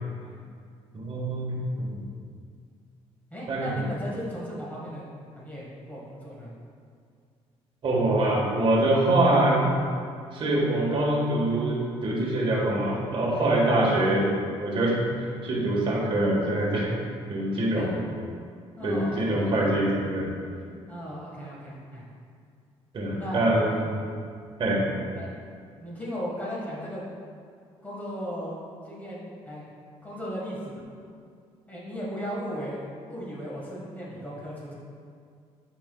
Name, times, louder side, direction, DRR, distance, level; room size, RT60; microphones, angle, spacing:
voice 1, 0.9-2.0 3.5-3.8 7.8-9.7 10.3-14.3 14.6-16.9 17.3-17.9 18.8-20.3 22.9-23.9 24.6-24.9, right 1 dB, 50° right, -3 dB, 1.4 m, -24 dB
voice 2, 3.3-5.0 5.3-6.5 13.3-13.5 17.7-17.9 18.8-19.6 20.9-22.0 23.2-23.4 23.7-23.8 25.2-25.3 25.8-27.0 27.8-29.7 30.0-30.8 31.7-32.8 33.1-34.7, equal, 15° left, -6 dB, 1.5 m, -36 dB
8.7 x 5.4 x 2.3 m, 2.2 s
cardioid pair, 110°, 11 cm